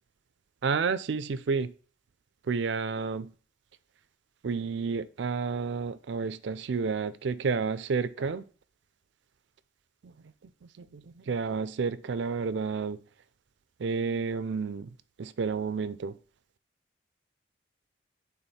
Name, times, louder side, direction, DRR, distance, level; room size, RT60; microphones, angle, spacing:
voice 1, 0.6-1.7 2.5-3.3 4.4-8.4 10.0-10.1 10.6-13.0 13.8-14.9 15.2-16.1, right 5 dB, 70° right, 0.4 m, -30 dB
8.8 x 3.6 x 4.2 m
head